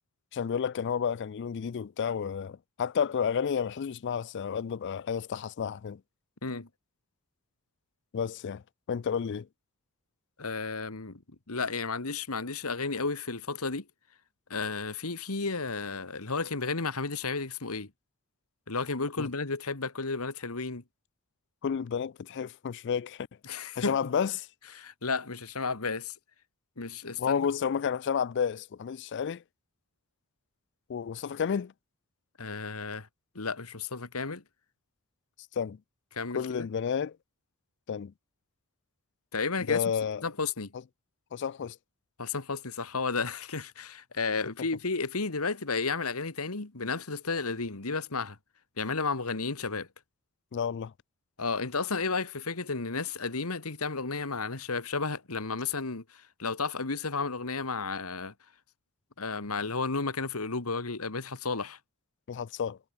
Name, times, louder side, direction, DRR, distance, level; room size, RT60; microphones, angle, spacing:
voice 1, 0.3-6.0 8.1-8.6 8.9-9.5 19.2-19.3 21.6-23.3 23.8-24.5 27.2-29.4 30.9-31.7 35.6-35.8 36.3-37.2 37.9-38.1 39.7-40.2 41.3-41.8 50.5-50.9 62.3-62.8, left 7 dB, 55° left, 0.4 m, -31 dB
voice 2, 10.4-11.2 11.5-13.9 14.5-17.9 18.7-20.8 23.5-24.0 24.7-26.1 26.8-27.5 32.4-33.1 33.4-34.4 36.1-36.7 39.3-39.8 40.2-40.7 42.2-48.4 48.8-49.9 51.4-58.3 59.2-61.8, left 4 dB, 80° left, 1.9 m, -32 dB
head